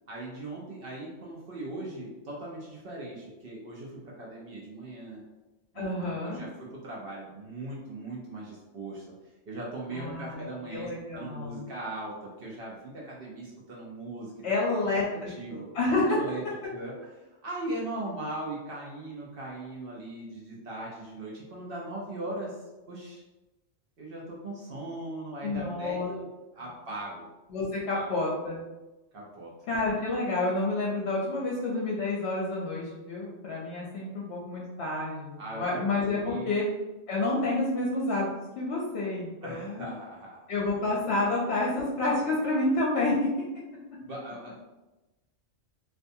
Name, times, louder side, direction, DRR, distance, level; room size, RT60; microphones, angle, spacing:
voice 1, 0.1-5.2 5.7-9.1 9.5-14.3 14.7-14.8 15.1-15.7 16.1-16.4 16.7-16.9 17.4-22.6 22.9-23.2 24.0-26.3 26.5-27.3 27.9-28.1 29.1-29.5 35.4-36.5 39.4-40.4 44.0-44.6, right 2 dB, 60° right, -4 dB, 0.7 m, -39 dB
voice 2, 5.7-6.4 9.9-11.7 14.4-16.2 25.4-26.1 27.5-28.6 29.7-36.7 37.1-38.3 38.6-39.9 40.5-43.3, left 2 dB, 65° left, -5 dB, 0.8 m, -29 dB
2.5 x 2.2 x 2.6 m, 1.1 s
omnidirectional pair, 1.3 m